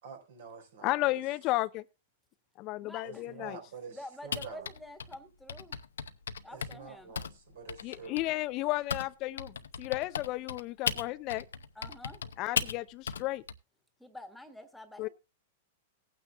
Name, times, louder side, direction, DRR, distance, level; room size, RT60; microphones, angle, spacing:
voice 1, 0.0-1.2 3.0-4.6 6.5-8.2, right 5 dB, 75° right, 4.1 m, -47 dB
voice 2, 0.8-1.8 2.6-3.6 7.8-11.5 12.4-13.4 15.0-15.1, left 18 dB, 45° left, 0.5 m, -33 dB
voice 3, 2.8-3.6 3.9-5.8 6.4-7.2 11.7-12.3 14.0-15.1, left 1 dB, 5° left, 1.5 m, -48 dB
Typing, 4.3-9.1 9.4-13.5, left 6 dB, 85° left, 0.7 m, -36 dB
18.5 x 9.1 x 2.3 m
hypercardioid pair, 120°, 0 cm